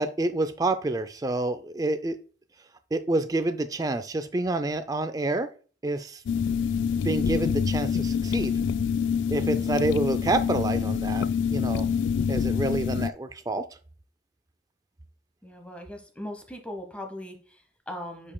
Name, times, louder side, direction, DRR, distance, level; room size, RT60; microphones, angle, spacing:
voice 1, 0.0-2.2 2.9-5.5 5.8-6.2 7.0-8.5 9.3-11.3 11.5-11.9 12.3-13.6, right 2 dB, 20° right, 9 dB, 0.3 m, -28 dB
sound 1, 6.3-13.1, left 7 dB, 75° left, 0.3 m, -26 dB
voice 2, 15.4-18.3, left 1 dB, 5° left, 5 dB, 1.0 m, -39 dB
8.4 x 5.2 x 2.2 m, 0.39 s
head